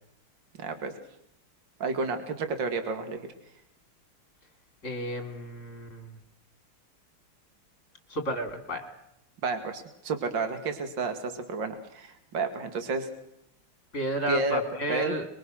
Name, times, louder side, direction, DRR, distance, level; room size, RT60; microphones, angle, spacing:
voice 1, 0.6-0.9 1.8-3.3 9.4-13.1 14.3-14.6 14.9-15.2, right 4 dB, 60° right, 8 dB, 2.8 m, -31 dB
voice 2, 4.8-6.1 8.1-8.9 13.9-15.3, equal, 35° left, 6 dB, 3.1 m, -32 dB
29.5 x 23.0 x 6.4 m, 0.79 s
omnidirectional pair, 2.3 m